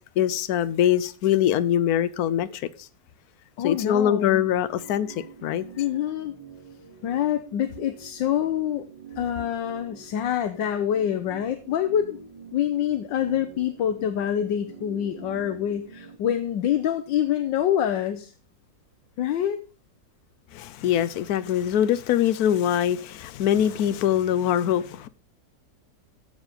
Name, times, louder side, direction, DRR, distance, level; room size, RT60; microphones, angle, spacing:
voice 1, 0.2-2.9 3.6-5.6 20.5-25.1, left 10 dB, 65° left, 1.1 m, -23 dB
voice 2, 3.6-4.5 5.8-6.3 7.0-8.8 9.2-12.2 12.5-18.3 19.2-19.6, left 10 dB, 85° left, 1.5 m, -26 dB
sound 1, 3.7-16.2, right 6 dB, 25° right, 1.0 m, -46 dB
14.5 x 5.3 x 5.0 m
omnidirectional pair, 2.0 m